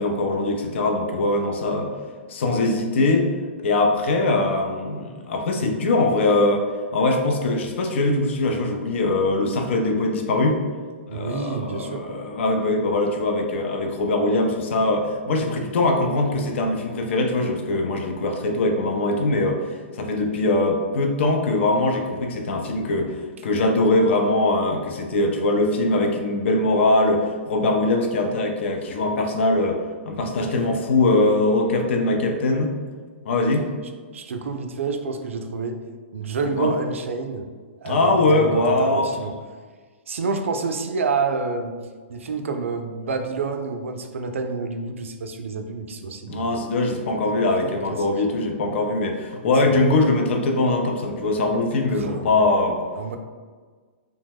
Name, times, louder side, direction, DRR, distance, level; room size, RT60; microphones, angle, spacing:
voice 1, 0.0-1.9 2.3-3.3 3.6-6.6 6.9-10.6 11.1-19.7 19.9-23.2 23.4-29.8 30.1-32.8 33.2-33.7 36.6-36.7 37.9-39.1 46.3-52.8, left 2 dB, 65° left, 3 dB, 0.5 m, -22 dB
voice 2, 11.1-12.1 34.1-35.8 36.1-37.5 37.8-39.4 40.1-41.8 42.1-46.6 47.2-47.4 47.6-48.1 49.6-49.8 52.0-52.5 53.0-53.2, right 4 dB, 80° right, 6 dB, 0.4 m, -28 dB
3.0 x 2.1 x 3.4 m, 1.5 s
hypercardioid pair, 130°, 7 cm